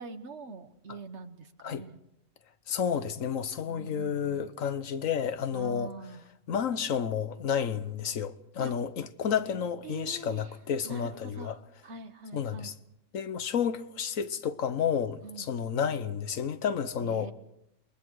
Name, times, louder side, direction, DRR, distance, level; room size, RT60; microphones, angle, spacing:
voice 1, 0.0-2.0 3.7-4.5 5.5-6.2 8.6-8.7 9.8-10.6 10.8-12.7 15.2-15.5 17.0-17.3, right 4 dB, 60° right, 1.5 m, -44 dB
voice 2, 2.7-5.9 6.5-11.5 12.3-12.7 13.1-17.3, left 7 dB, 80° left, 1.4 m, -31 dB
29.0 x 21.5 x 4.8 m
omnidirectional pair, 1.4 m